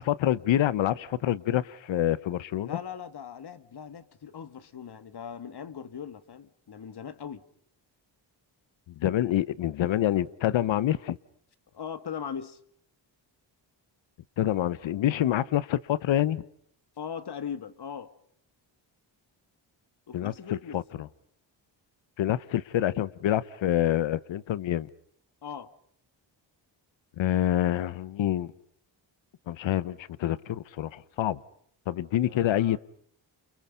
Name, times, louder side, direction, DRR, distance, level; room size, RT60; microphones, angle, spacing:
voice 1, 0.0-2.8 9.0-11.2 14.4-16.4 20.1-21.1 22.2-24.9 27.2-28.5 29.5-31.4 31.9-32.8, left 12 dB, 85° left, 1.0 m, -27 dB
voice 2, 2.6-7.4 9.9-10.0 11.7-12.6 17.0-18.1 20.1-20.8 25.4-25.7 32.3-32.8, left 7 dB, 60° left, 2.0 m, -39 dB
30.0 x 28.5 x 5.2 m
cardioid pair, 75°, 45 cm